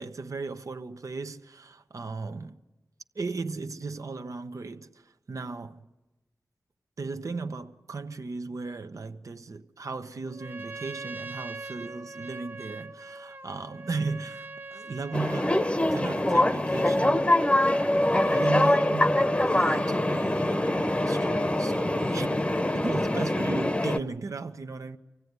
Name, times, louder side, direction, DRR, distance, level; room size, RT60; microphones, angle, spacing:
voice 1, 0.0-2.6 3.1-5.9 7.0-17.3 18.3-22.4 22.7-25.0, right 3 dB, 65° right, 1.0 m, -36 dB
Trumpet, 10.3-15.8, right 3 dB, 35° right, 0.8 m, -42 dB
sound 1, 15.1-24.0, left 1 dB, 20° left, 0.9 m, -24 dB
25.0 x 16.5 x 9.5 m
cardioid pair, 55°, 6 cm